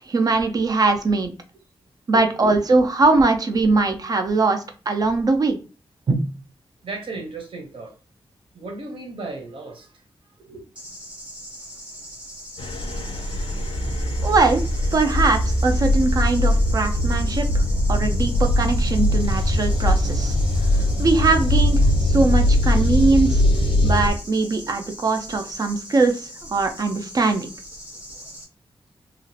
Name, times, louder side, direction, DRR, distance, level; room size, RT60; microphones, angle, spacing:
voice 1, 0.0-1.3 2.1-5.6 6.1-6.3 14.2-14.6 14.9-17.6 17.9-20.4 20.7-23.4 23.8-27.5, right 3 dB, 40° right, 6 dB, 0.4 m, -21 dB
voice 2, 6.8-7.9 8.5-10.0 10.4-10.6, right 3 dB, 70° right, 2 dB, 1.0 m, -35 dB
sound 1, 10.7-28.4, equal, 10° right, 0.7 m, -40 dB
sound 2, 12.6-24.1, left 1 dB, 65° left, 0.4 m, -20 dB
2.9 x 2.4 x 2.7 m, 0.34 s
wide cardioid pair, 180°, 9 cm